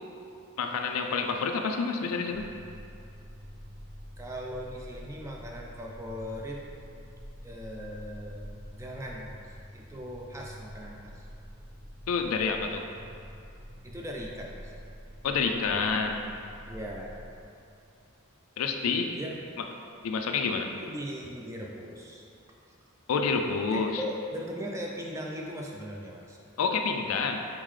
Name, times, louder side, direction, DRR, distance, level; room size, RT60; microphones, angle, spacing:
voice 1, 0.6-2.5 12.1-12.9 15.2-16.2 18.6-19.2 20.0-20.7 23.1-24.0 26.6-27.5, left 5 dB, 70° left, 4 dB, 0.4 m, -28 dB
sound 1, 2.3-17.4, equal, 55° right, 0.8 m, -47 dB
voice 2, 4.2-6.6 7.4-8.4 8.8-9.4 9.7-11.3 13.8-14.7 16.7-17.3 18.9-19.4 20.8-22.2 23.7-26.4, equal, 15° right, -1 dB, 0.3 m, -39 dB
4.3 x 3.7 x 3.2 m, 2.6 s
head